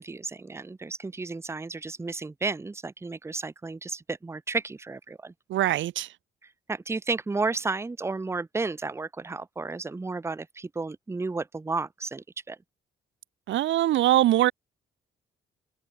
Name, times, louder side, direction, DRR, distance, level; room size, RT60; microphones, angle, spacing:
voice 1, 0.0-5.3 6.7-12.6, right 3 dB, 15° right, 0.6 m, -32 dB
voice 2, 5.5-6.1 13.5-14.5, right 14 dB, 70° right, 0.6 m, -22 dB
cardioid pair, 90°, 20 cm